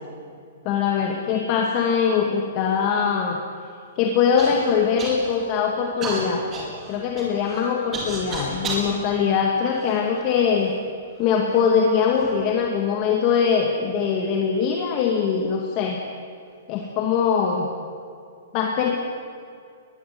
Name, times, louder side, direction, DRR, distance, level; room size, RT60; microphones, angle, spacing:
voice 1, 0.7-3.4 4.0-6.4 6.9-10.7 11.2-16.0 16.7-17.7 18.5-19.0, left 6 dB, 30° left, 1 dB, 2.3 m, -22 dB
Human voice / Cough, 4.4-4.6 5.0-5.5 6.0-8.9 9.6-10.4 11.2-11.3 12.0-12.3, right 3 dB, 15° right, 5.0 m, -32 dB
22.0 x 21.5 x 9.6 m, 2.3 s
hypercardioid pair, 170°, 0 cm